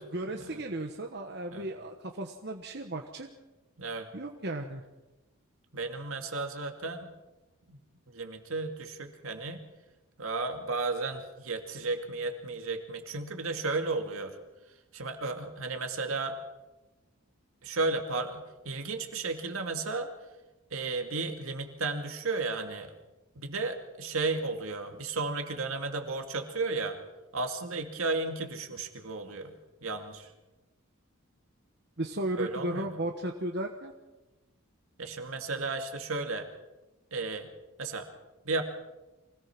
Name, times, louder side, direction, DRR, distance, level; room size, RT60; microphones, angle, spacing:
voice 1, 0.0-3.3 4.1-4.8 32.0-33.9, right 1 dB, 50° right, 3 dB, 1.2 m, -35 dB
voice 2, 3.8-4.1 5.7-7.1 7.7-7.8 8.1-9.6 10.2-14.4 14.9-16.4 17.6-20.1 20.7-22.9 23.4-27.0 27.3-29.5 29.8-30.3 32.4-32.9 35.0-36.5 37.1-37.5 37.8-38.1 38.4-38.6, right 3 dB, 75° right, 5 dB, 2.4 m, -33 dB
24.5 x 18.0 x 6.1 m, 1.1 s
head